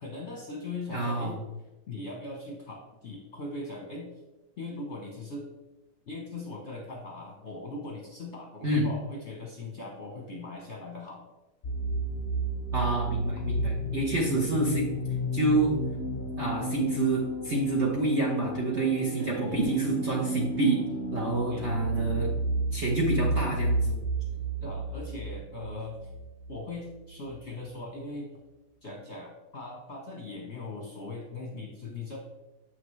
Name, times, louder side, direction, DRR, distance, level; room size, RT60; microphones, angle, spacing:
voice 1, 0.0-1.3 1.9-4.1 4.6-5.4 6.1-11.2 14.3-14.6 19.2-19.7 21.5-21.7 24.6-26.1 26.5-28.3 28.8-32.2, left 3 dB, 40° left, -2 dB, 1.1 m, -40 dB
voice 2, 0.9-1.4 8.6-8.9 12.7-14.9 15.3-15.8 16.4-20.8 21.1-22.3 22.7-24.0, right 2 dB, 40° right, -2 dB, 1.1 m, -27 dB
sound 1, 11.6-27.2, right 1 dB, 60° left, 0.6 m, -32 dB
8.1 x 5.9 x 3.2 m, 1.1 s
omnidirectional pair, 2.2 m